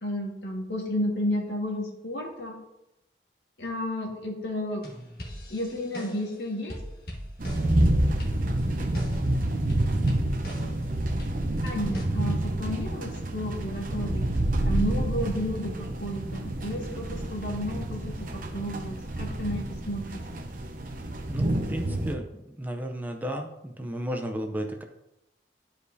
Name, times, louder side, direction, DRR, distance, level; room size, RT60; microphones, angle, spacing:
voice 1, 0.0-2.6 3.6-4.8 5.5-6.8 11.6-14.3 14.6-18.0 18.3-20.2, left 1 dB, 85° left, 0 dB, 1.6 m, -32 dB
sound 1, 4.8-6.4 6.7-7.8 8.2-9.3 9.7-10.8 11.2-12.0, equal, 55° left, 1.6 m, -41 dB
sound 2, 7.4-22.1, right 1 dB, 50° right, 0.8 m, -28 dB
voice 2, 21.3-22.3 22.6-24.8, equal, 10° right, 4 dB, 0.5 m, -33 dB
11.5 x 5.0 x 2.7 m, 0.88 s
head